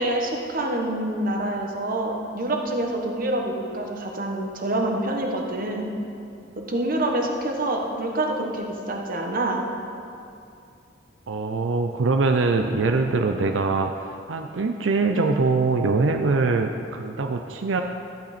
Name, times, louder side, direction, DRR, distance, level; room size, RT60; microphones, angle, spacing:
voice 1, 0.0-5.9 6.7-9.6, right 1 dB, 50° right, 1 dB, 1.3 m, -26 dB
voice 2, 11.3-17.8, right 3 dB, 90° right, 5 dB, 0.5 m, -23 dB
13.0 x 8.9 x 4.2 m, 2.6 s
head